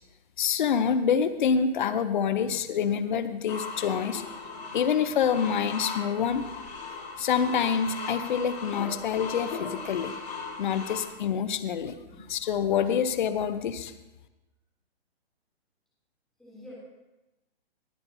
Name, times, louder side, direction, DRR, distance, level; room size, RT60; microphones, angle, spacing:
voice 1, 0.4-4.2 4.7-6.4 7.2-10.2 10.6-11.9 12.3-13.9, left 7 dB, 50° left, 11 dB, 0.8 m, -26 dB
sound 1, 3.5-11.1, left 4 dB, 75° left, 4.8 m, -38 dB
voice 2, 4.5-5.0 12.1-12.3 16.4-16.8, left 1 dB, ahead, -8 dB, 2.8 m, -49 dB
20.0 x 8.5 x 2.7 m, 1.0 s
hypercardioid pair, 160°, 31 cm